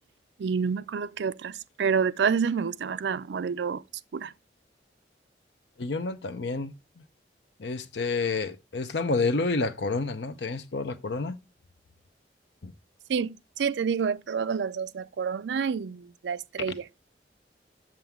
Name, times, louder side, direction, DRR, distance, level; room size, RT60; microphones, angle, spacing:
voice 1, 0.4-3.8 4.1-4.3 13.1-16.8, right 6 dB, 75° right, 0.4 m, -28 dB
voice 2, 5.8-6.7 7.6-11.4 12.6-12.7 16.7-16.8, left 3 dB, 75° left, 0.7 m, -29 dB
7.5 x 6.9 x 3.5 m
head